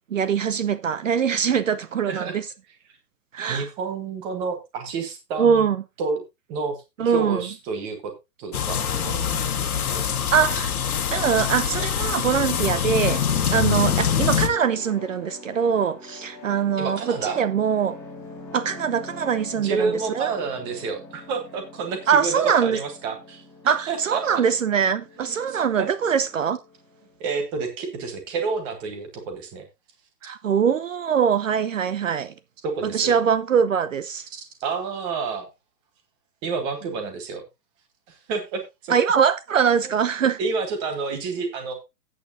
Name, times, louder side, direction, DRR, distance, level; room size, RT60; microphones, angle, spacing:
voice 1, 0.1-2.5 3.3-3.7 5.4-5.8 7.0-7.5 10.3-10.7 11.1-13.2 13.5-18.0 18.5-20.3 22.1-22.8 23.7-26.6 30.2-32.3 32.9-34.3 38.9-40.4, right 7 dB, 50° right, 0.8 m, -22 dB
voice 2, 3.5-5.7 6.0-6.2 6.5-6.8 7.0-8.1 8.4-10.2 16.8-17.4 19.6-24.2 25.2-25.9 27.2-29.6 32.6-33.2 34.3-35.5 36.4-37.4 38.1-38.9 39.8-40.0 40.4-41.7, right 4 dB, 10° right, 1.0 m, -30 dB
sound 1, 8.5-14.5, left 8 dB, 60° left, 1.7 m, -24 dB
sound 2, 11.9-27.3, left 3 dB, 5° left, 2.1 m, -44 dB
13.0 x 8.9 x 2.6 m
hypercardioid pair, 165°, 50 cm